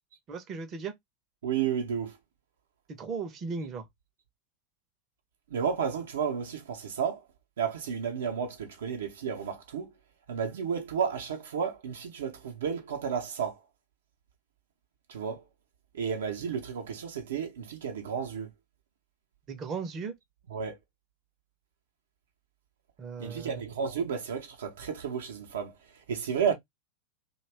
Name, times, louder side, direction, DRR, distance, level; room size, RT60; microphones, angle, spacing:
voice 1, 0.3-0.9 3.0-3.9 19.5-20.1 23.0-23.6, right 5 dB, 30° right, 0.7 m, -36 dB
voice 2, 1.4-2.1 5.5-7.2 7.6-9.9 10.3-13.6 15.1-15.4 15.9-18.5 20.5-20.8 23.2-25.7 26.1-26.5, right 7 dB, 60° right, 0.7 m, -32 dB
2.6 x 2.3 x 3.2 m
figure-of-eight pair, 90°, 0 cm